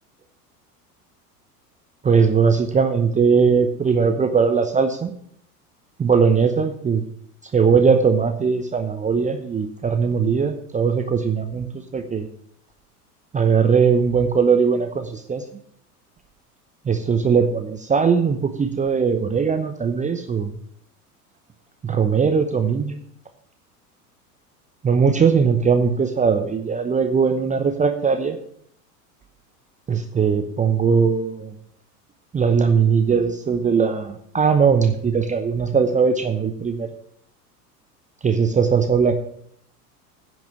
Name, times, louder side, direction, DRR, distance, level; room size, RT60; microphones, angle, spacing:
voice 1, 2.0-5.1 6.0-7.0 7.5-12.3 13.3-15.4 16.8-20.6 21.8-23.0 24.8-28.4 29.9-31.5 32.3-36.9 38.2-39.1, right 6 dB, 15° right, 8 dB, 0.8 m, -19 dB
10.0 x 6.2 x 7.4 m, 0.65 s
hypercardioid pair, 85°, 47 cm